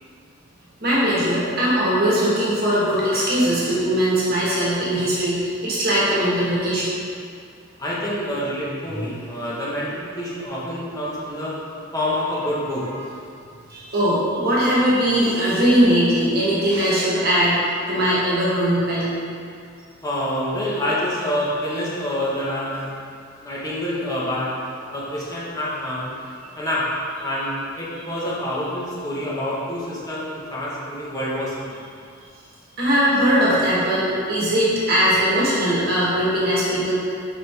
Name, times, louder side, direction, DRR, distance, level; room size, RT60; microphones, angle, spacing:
voice 1, 0.8-7.0 8.9-9.0 9.5-9.6 13.7-19.1 32.8-36.9, equal, 50° right, -8 dB, 1.4 m, -20 dB
voice 2, 7.8-11.6 11.9-12.8 20.0-23.0 23.4-24.5 24.9-26.1 26.6-26.9 27.2-31.8, left 1 dB, 20° left, -8 dB, 1.2 m, -27 dB
5.5 x 5.0 x 3.5 m, 2.3 s
head